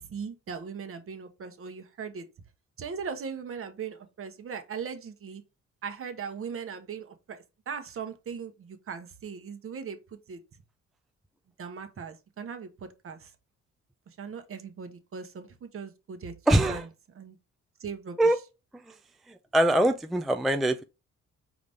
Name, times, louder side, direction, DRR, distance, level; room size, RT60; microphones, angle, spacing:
voice 1, 0.0-2.3 2.8-5.4 5.8-10.4 11.6-13.3 14.1-16.9 17.1-17.4 17.8-18.4, right 6 dB, 45° right, 1.0 m, -39 dB
voice 2, 16.5-16.9 18.2-18.4 19.5-20.8, right 1 dB, ahead, 0.3 m, -22 dB
4.9 x 2.7 x 3.4 m
cardioid pair, 90°, 30 cm